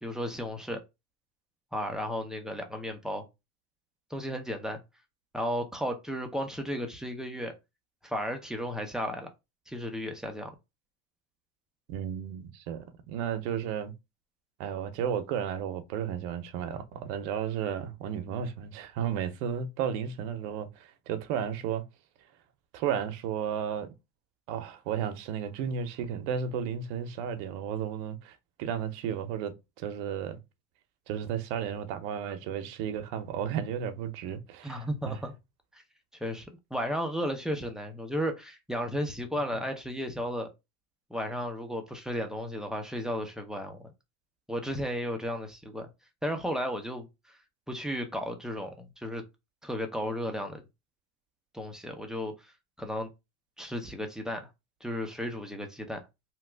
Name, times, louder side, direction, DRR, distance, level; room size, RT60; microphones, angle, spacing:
voice 1, 0.0-0.8 1.7-3.2 4.1-4.8 5.3-7.5 8.0-9.3 9.7-10.5 34.6-35.3 35.7-35.8 36.1-40.5 41.1-43.8 44.5-45.9 46.2-47.4 47.7-49.2 49.6-50.6 51.5-52.3 52.8-53.1 53.6-54.5 54.8-56.0, equal, ahead, 0.4 m, -34 dB
voice 2, 11.9-13.9 14.6-21.9 22.7-23.9 24.5-30.4 31.1-35.2, right 8 dB, 80° right, 0.7 m, -33 dB
2.9 x 2.3 x 3.3 m
cardioid pair, 130°, 34 cm